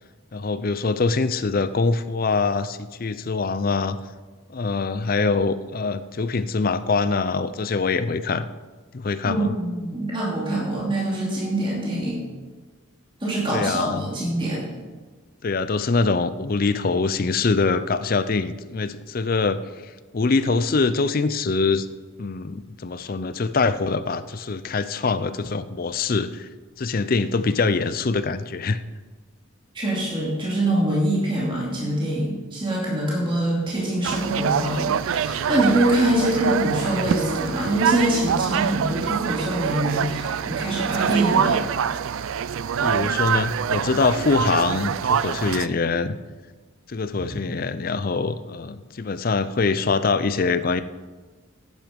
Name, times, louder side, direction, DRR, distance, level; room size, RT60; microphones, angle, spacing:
voice 1, 0.3-4.0 4.5-8.5 8.9-9.5 13.5-14.1 15.4-19.6 20.1-21.9 22.2-26.5 26.8-28.8 42.8-46.2 46.9-50.8, left 4 dB, 40° left, 13 dB, 0.5 m, -24 dB
voice 2, 9.2-12.2 13.2-14.6 29.7-41.6 47.2-47.3, right 1 dB, 25° right, -5 dB, 2.6 m, -24 dB
sound 1, 34.0-45.7, right 7 dB, 70° right, 0.4 m, -25 dB
10.5 x 9.1 x 5.2 m, 1.3 s
head